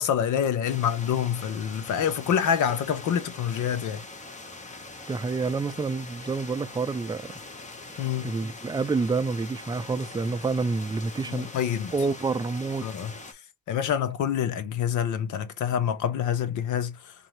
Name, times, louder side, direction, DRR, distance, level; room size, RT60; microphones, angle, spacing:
voice 1, 0.0-4.0 8.0-8.3 11.3-11.9 12.8-13.1 13.7-17.1, left 8 dB, 80° left, 0.9 m, -26 dB
sound 1, 0.6-13.3, left 2 dB, 25° left, 1.2 m, -43 dB
voice 2, 5.1-7.3 8.2-11.5 11.9-12.9, right 4 dB, 15° right, 0.4 m, -28 dB
4.0 x 2.7 x 3.1 m
cardioid pair, 90°, 30 cm